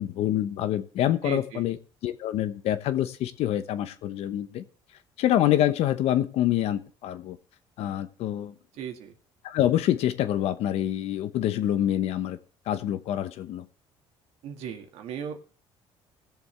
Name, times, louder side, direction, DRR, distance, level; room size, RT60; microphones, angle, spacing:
voice 1, 0.0-4.6 5.2-7.4 7.8-8.5 9.4-12.4 12.7-13.6, left 12 dB, 70° left, 12 dB, 0.9 m, -26 dB
voice 2, 1.2-1.7 8.8-9.1 14.4-15.4, right 8 dB, 75° right, 5 dB, 1.8 m, -36 dB
19.0 x 7.1 x 3.3 m, 0.37 s
cardioid pair, 115°, 11 cm